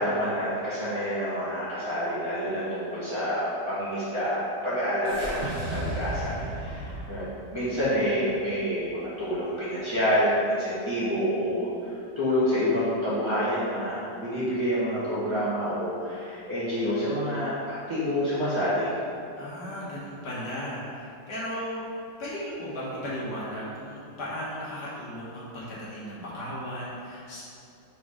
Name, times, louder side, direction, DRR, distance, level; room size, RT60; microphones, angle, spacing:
voice 1, 0.0-18.9, equal, 15° right, -12 dB, 1.4 m, -28 dB
sound 1, 5.0-9.4, right 1 dB, 45° right, 1.0 m, -36 dB
voice 2, 6.6-7.0 19.4-21.8 22.2-27.4, equal, 70° left, -8 dB, 2.0 m, -36 dB
5.0 x 3.8 x 4.9 m, 2.6 s
omnidirectional pair, 1.9 m